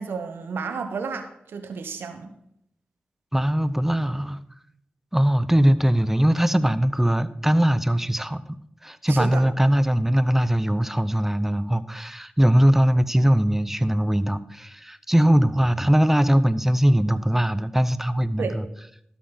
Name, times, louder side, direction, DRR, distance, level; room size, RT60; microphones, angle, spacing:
voice 1, 0.0-2.3 9.1-9.4 18.4-18.5, right 5 dB, 85° right, 7 dB, 1.1 m, -31 dB
voice 2, 3.3-4.4 5.1-18.7, equal, 10° right, 15 dB, 0.7 m, -21 dB
12.5 x 8.4 x 3.9 m, 0.73 s
cardioid pair, 40°, 4 cm